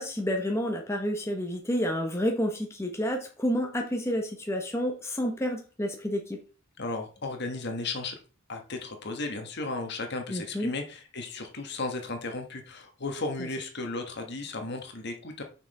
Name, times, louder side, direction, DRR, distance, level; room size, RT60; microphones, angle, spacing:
voice 1, 0.0-6.4 10.3-10.7, equal, 15° left, 1 dB, 1.0 m, -29 dB
voice 2, 6.8-8.2 8.5-15.4, left 3 dB, 55° left, 4 dB, 1.4 m, -35 dB
6.0 x 5.8 x 4.2 m, 0.36 s
head